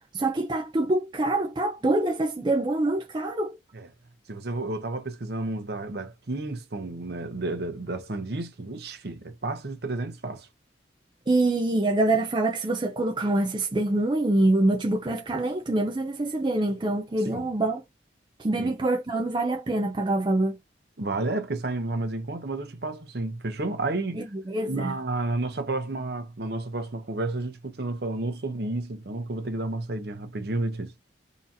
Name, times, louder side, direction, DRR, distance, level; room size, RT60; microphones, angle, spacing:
voice 1, 0.1-3.6 11.3-17.8 18.4-20.6 24.1-24.9, right 2 dB, 25° right, 0.4 m, -25 dB
voice 2, 4.3-10.5 17.3-17.5 18.6-18.7 21.0-24.2 24.7-30.9, right 2 dB, 55° right, 0.8 m, -31 dB
3.8 x 2.8 x 2.6 m
head